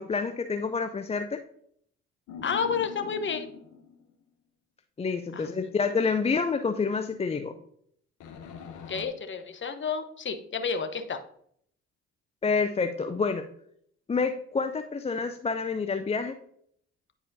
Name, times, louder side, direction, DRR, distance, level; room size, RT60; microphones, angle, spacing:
voice 1, 0.0-1.4 5.0-7.5 12.4-13.4 14.1-16.3, left 5 dB, 20° left, 8 dB, 0.5 m, -28 dB
sound 1, 2.3-4.1 8.2-9.1, left 6 dB, 65° left, 1.0 m, -43 dB
voice 2, 2.4-3.5 5.3-5.5 8.9-11.2, left 6 dB, 35° left, 8 dB, 0.9 m, -30 dB
9.7 x 4.8 x 2.7 m, 0.67 s
hypercardioid pair, 50°, 33 cm